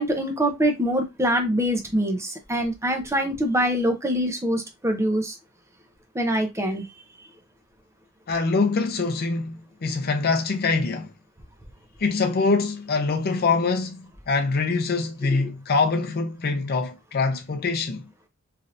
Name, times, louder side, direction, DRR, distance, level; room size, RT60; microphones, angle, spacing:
voice 1, 0.0-5.4 6.1-6.9, equal, 15° right, 0.6 m, -24 dB
voice 2, 8.3-11.1 12.0-18.1, left 4 dB, 50° left, 0.5 m, -24 dB
3.2 x 2.6 x 2.5 m
head